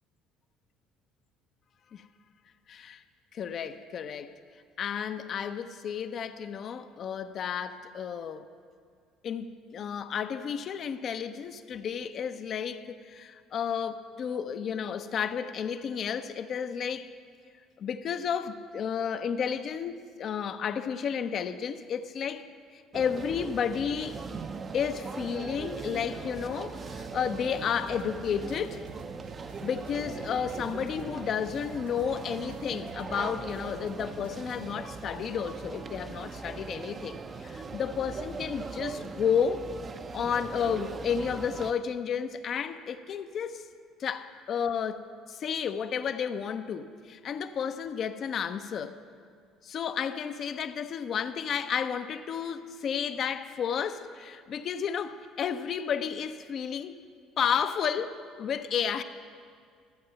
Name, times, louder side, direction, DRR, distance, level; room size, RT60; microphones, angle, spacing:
voice 1, 2.7-3.0 3.3-4.3 4.8-8.5 9.2-17.1 17.8-22.5 22.7-24.2 24.7-28.8 29.6-39.6 40.1-43.7 44.0-49.0 49.6-57.0 57.4-59.0, left 7 dB, 50° left, 10 dB, 0.6 m, -32 dB
sound 1, 22.9-41.7, right 4 dB, 35° right, 0.6 m, -40 dB
sound 2, 26.7-34.7, right 3 dB, 80° right, 0.7 m, -53 dB
13.5 x 8.4 x 5.8 m, 2.2 s
hypercardioid pair, 60°, 0 cm